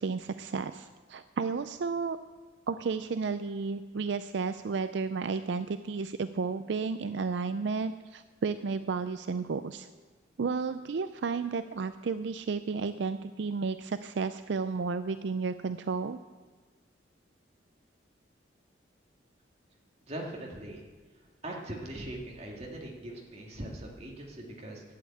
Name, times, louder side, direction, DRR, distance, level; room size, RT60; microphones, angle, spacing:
voice 1, 0.0-2.2 2.7-9.9 10.4-16.2, right 4 dB, 70° right, 11 dB, 0.4 m, -32 dB
voice 2, 20.1-20.8 21.4-24.8, right 1 dB, 35° right, -1 dB, 2.1 m, -40 dB
11.5 x 8.5 x 8.6 m, 1.4 s
head